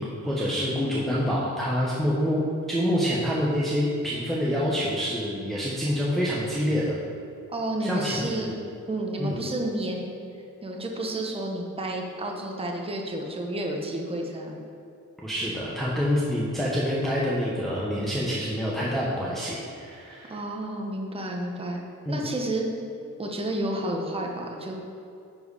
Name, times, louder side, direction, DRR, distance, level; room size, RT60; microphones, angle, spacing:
voice 1, 0.0-2.4 2.7-6.9 7.8-8.5 9.2-9.4 15.2-20.4 22.1-22.2, equal, ahead, -7 dB, 1.1 m, -27 dB
voice 2, 7.5-8.5 8.9-10.1 10.6-14.6 20.3-21.8 22.1-22.7 23.2-24.7, right 1 dB, 20° right, 0 dB, 1.0 m, -30 dB
10.5 x 4.7 x 4.9 m, 2.6 s
wide cardioid pair, 135°, 32 cm